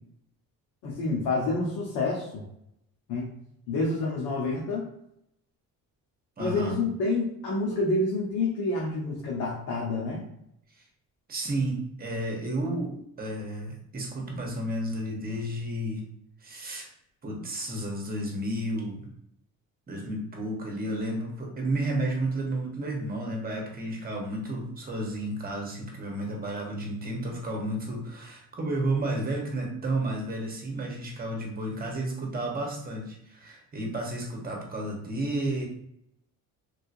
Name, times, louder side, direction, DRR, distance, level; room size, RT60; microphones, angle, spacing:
voice 1, 0.8-2.4 3.1-3.3 3.7-4.8 6.4-10.2, left 2 dB, 85° left, -4 dB, 1.0 m, -28 dB
voice 2, 6.4-6.8 11.3-16.0 16.4-16.9 17.2-19.1 19.9-35.6, right 1 dB, 25° right, 0 dB, 1.0 m, -32 dB
3.3 x 2.7 x 2.6 m, 0.73 s
cardioid pair, 115°, 34 cm